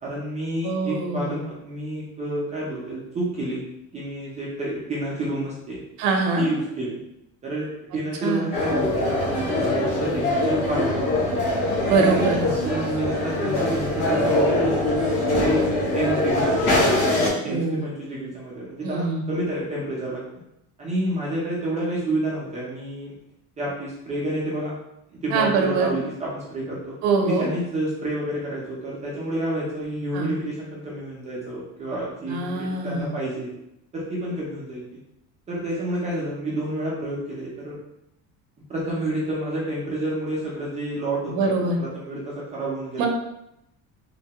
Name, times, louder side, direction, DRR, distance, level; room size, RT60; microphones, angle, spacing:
voice 1, 0.0-3.6 3.9-5.8 6.4-7.0 7.4-11.4 11.9-15.6 15.9-16.9 17.4-20.2 20.8-23.1 23.6-24.7 25.1-26.9 27.2-33.5 33.9-34.8 35.5-37.8 38.7-43.1, right 1 dB, 20° right, -6 dB, 0.4 m, -29 dB
voice 2, 0.6-1.4 6.0-6.5 8.2-8.5 11.9-12.4 17.2-17.9 18.8-19.2 25.3-25.9 27.0-27.5 30.1-30.3 32.3-33.1 41.3-41.8 43.0-43.1, right 4 dB, 65° right, 2 dB, 0.6 m, -23 dB
sound 1, 8.5-17.3, left 1 dB, 80° left, 1.1 m, -23 dB
3.1 x 2.1 x 2.7 m, 0.82 s
cardioid pair, 180°, 37 cm